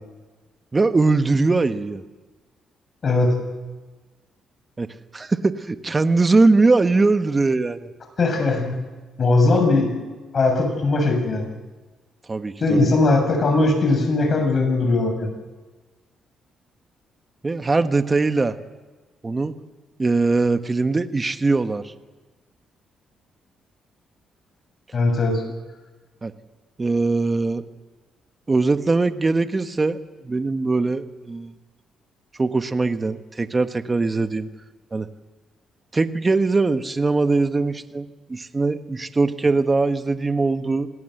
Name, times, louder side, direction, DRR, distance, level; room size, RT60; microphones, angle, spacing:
voice 1, 0.7-2.0 4.8-4.9 5.1-7.9 12.3-12.9 17.4-18.6 19.2-19.5 20.0-21.9 26.2-26.3 26.8-27.6 28.5-30.0 30.2-31.5 32.4-34.5 34.9-35.1 35.9-40.9, right 3 dB, 25° right, 9 dB, 1.4 m, -21 dB
voice 2, 3.0-3.4 8.2-8.8 9.2-9.9 10.3-11.5 12.6-15.3 24.9-25.4, left 2 dB, 45° left, 5 dB, 7.4 m, -19 dB
27.0 x 19.0 x 8.0 m, 1.3 s
cardioid pair, 90°, 0 cm